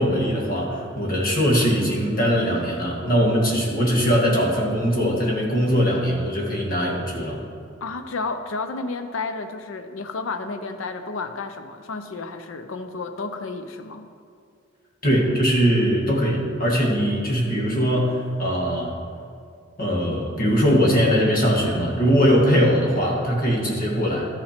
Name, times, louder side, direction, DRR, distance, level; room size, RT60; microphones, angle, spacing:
voice 1, 0.0-7.4 15.0-19.0 19.8-24.3, equal, 45° left, -2 dB, 1.8 m, -21 dB
voice 2, 7.8-14.1, left 3 dB, 75° left, 8 dB, 0.6 m, -31 dB
13.0 x 5.7 x 4.4 m, 2.3 s
head